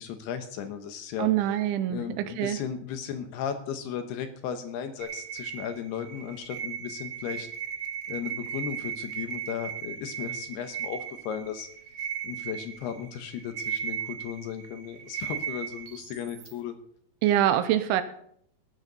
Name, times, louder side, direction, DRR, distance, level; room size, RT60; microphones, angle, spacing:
voice 1, 0.0-1.3 1.9-7.5 8.1-11.7 12.0-16.8, left 8 dB, 70° left, 8 dB, 2.7 m, -36 dB
voice 2, 1.2-2.6 17.2-18.0, right 12 dB, 80° right, 10 dB, 3.1 m, -25 dB
sound 1, 5.0-16.5, right 8 dB, 65° right, 2.1 m, -37 dB
17.0 x 13.0 x 4.0 m, 0.67 s
omnidirectional pair, 5.6 m